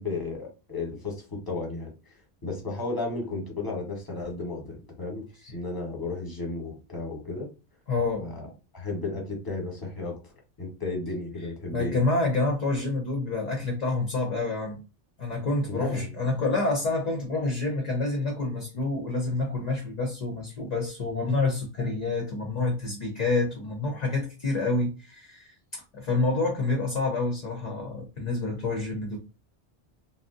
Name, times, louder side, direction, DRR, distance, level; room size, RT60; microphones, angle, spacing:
voice 1, 0.0-1.9 2.4-7.5 8.2-10.1 10.6-11.9 15.7-16.1, left 3 dB, 20° left, 0.9 m, -33 dB
voice 2, 7.9-8.3 11.7-14.8 15.2-29.2, left 3 dB, 50° left, 0.6 m, -28 dB
2.6 x 2.1 x 3.6 m
omnidirectional pair, 1.1 m